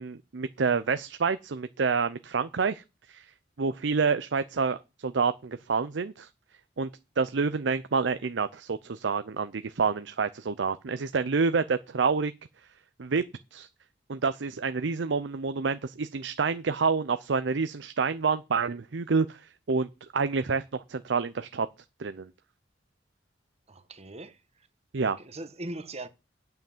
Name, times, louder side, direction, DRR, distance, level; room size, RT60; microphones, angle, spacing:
voice 1, 0.0-2.8 3.1-3.2 3.6-6.3 6.8-6.9 7.2-12.3 13.0-13.2 13.5-13.7 14.1-19.4 19.7-21.7 22.0-22.3 24.9-25.2, right 5 dB, 75° right, 0.6 m, -28 dB
voice 2, 23.7-24.4 25.0-26.1, right 2 dB, 35° right, 1.1 m, -40 dB
9.2 x 5.8 x 7.2 m
head